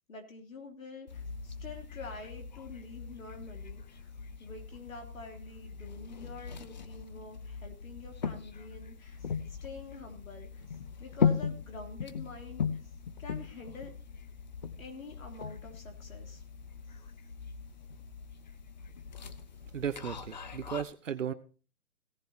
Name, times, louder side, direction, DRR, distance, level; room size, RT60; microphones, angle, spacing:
voice 1, 0.1-4.1 4.4-12.9 13.2-13.9 14.8-16.4, left 3 dB, 70° left, 3 dB, 3.2 m, -47 dB
sound 1, 1.1-20.8, left 6 dB, 30° left, 0.6 m, -38 dB
voice 2, 19.7-21.3, right 8 dB, 60° right, 13 dB, 0.9 m, -35 dB
17.0 x 10.5 x 2.9 m, 0.37 s
hypercardioid pair, 150°, 43 cm